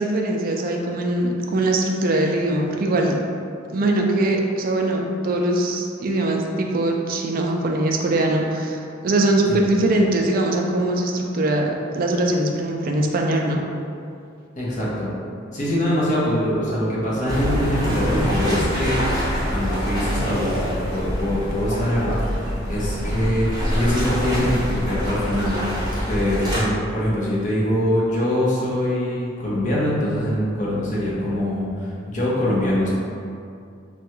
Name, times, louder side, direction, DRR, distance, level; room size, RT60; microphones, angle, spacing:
voice 1, 0.0-3.2 3.7-13.6, right 1 dB, 45° right, 1 dB, 0.3 m, -22 dB
voice 2, 14.5-15.1 15.5-25.8 26.1-32.9, left 1 dB, 40° left, -7 dB, 0.7 m, -23 dB
sound 1, 17.3-26.6, equal, 20° right, 0.8 m, -25 dB
3.3 x 2.3 x 2.9 m, 2.4 s
head